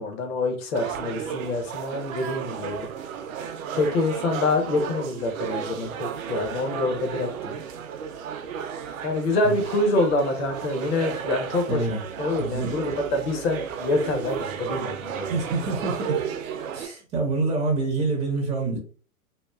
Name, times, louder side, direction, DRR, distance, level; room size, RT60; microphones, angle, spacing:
voice 1, 0.0-2.9 3.7-7.6 9.0-11.8 12.2-15.3, left 2 dB, 40° left, 4 dB, 0.9 m, -26 dB
sound 1, 0.7-16.9, right 7 dB, 60° right, 0.6 m, -33 dB
voice 2, 11.7-12.0 12.4-12.7 15.3-16.2 16.7-18.8, right 3 dB, 10° right, -2 dB, 0.5 m, -26 dB
3.0 x 2.2 x 2.3 m, 0.40 s
hypercardioid pair, 110°, 45 cm